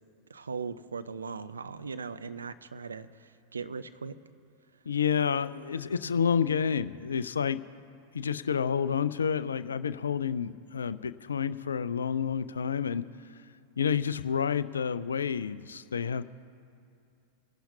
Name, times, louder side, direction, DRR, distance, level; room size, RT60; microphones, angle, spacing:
voice 1, 0.3-4.1 5.9-6.2, right 5 dB, 75° right, 11 dB, 0.6 m, -39 dB
voice 2, 4.9-7.6 8.1-13.0 13.8-16.2, left 7 dB, 70° left, 15 dB, 0.4 m, -29 dB
25.0 x 11.5 x 2.8 m, 2.5 s
figure-of-eight pair, 90°, 0 cm